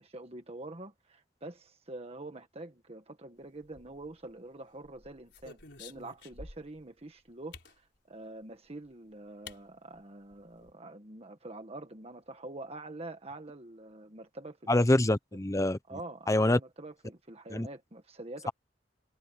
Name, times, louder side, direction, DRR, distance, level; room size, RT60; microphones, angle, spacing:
voice 1, 0.0-14.8 15.9-18.5, right 2 dB, 35° right, 1.6 m, -46 dB
sound 1, 3.6-4.3 4.8-6.8 7.5-7.8 8.9-9.0 9.5-9.6 9.9-10.0 10.3-10.7, left 3 dB, 75° left, 4.8 m, -50 dB
voice 2, 14.7-15.8 16.3-16.6 17.5-17.7, left 1 dB, 20° left, 0.8 m, -25 dB
head